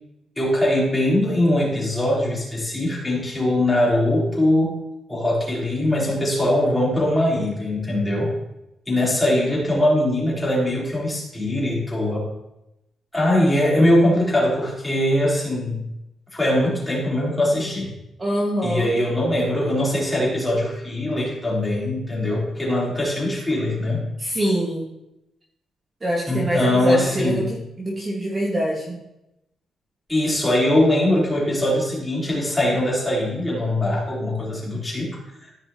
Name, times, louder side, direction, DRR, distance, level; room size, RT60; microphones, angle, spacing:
voice 1, 0.4-4.8 5.1-8.3 8.9-12.3 13.1-15.8 16.3-17.9 18.6-24.1 26.3-27.5 30.1-35.5, left 1 dB, 10° left, -6 dB, 3.4 m, -21 dB
voice 2, 18.2-18.9 24.2-24.9 26.0-29.0, equal, 25° right, -4 dB, 1.6 m, -24 dB
14.0 x 5.5 x 2.9 m, 0.88 s
cardioid pair, 155°, 0 cm